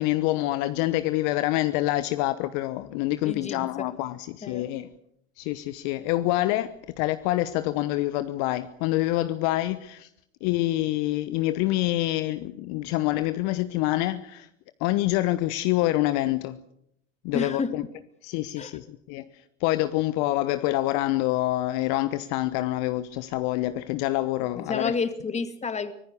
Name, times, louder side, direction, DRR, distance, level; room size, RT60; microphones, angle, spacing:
voice 1, 0.0-4.9 5.4-6.7 7.0-10.1 10.4-14.5 14.8-16.6 17.2-17.8 18.2-19.3 19.6-24.9, left 16 dB, 50° left, 1.1 m, -26 dB
voice 2, 3.2-3.9 4.4-4.7 17.3-17.7 18.6-18.8 24.5-25.9, left 5 dB, 20° left, 2.3 m, -30 dB
25.0 x 19.0 x 6.9 m
hypercardioid pair, 85°, 37 cm